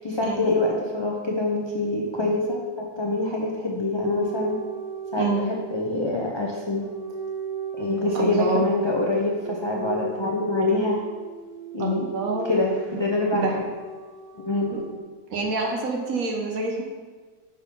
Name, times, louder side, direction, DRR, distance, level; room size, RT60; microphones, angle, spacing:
voice 1, 0.0-4.6 5.1-6.8 7.8-11.0 11.7-12.1 12.5-13.7 14.4-14.8, left 2 dB, 30° left, -2 dB, 0.5 m, -25 dB
sound 1, 4.0-6.0 6.8-15.0, right 5 dB, 90° right, 1.2 m, -37 dB
voice 2, 8.1-8.6 11.8-12.5 13.3-13.6 14.7-14.8 15.3-16.8, right 3 dB, 70° right, 1 dB, 1.3 m, -27 dB
6.6 x 4.5 x 5.3 m, 1.4 s
omnidirectional pair, 1.6 m